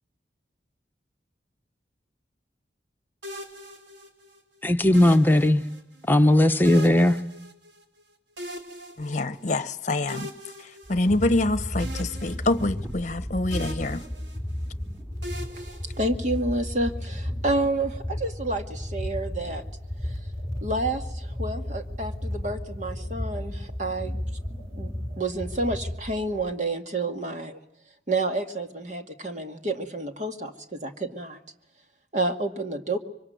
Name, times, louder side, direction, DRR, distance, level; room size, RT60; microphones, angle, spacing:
sound 1, 3.2-4.4 4.9-6.1 6.6-8.0 8.4-9.6 10.1-11.4 11.8-13.2 13.5-14.7 15.2-16.6, equal, 85° right, 4.2 m, -42 dB
voice 1, 4.6-5.6 6.1-7.2, left 1 dB, 10° left, 1.1 m, -18 dB
voice 2, 9.0-10.3 10.6-14.0, left 2 dB, 40° left, 1.0 m, -26 dB
sound 2, 10.8-26.5, left 1 dB, 15° right, 5.7 m, -34 dB
voice 3, 15.6-19.6 20.6-24.2 24.8-27.6 28.1-31.4 32.1-33.0, right 2 dB, 40° right, 2.2 m, -29 dB
26.0 x 24.5 x 9.4 m
head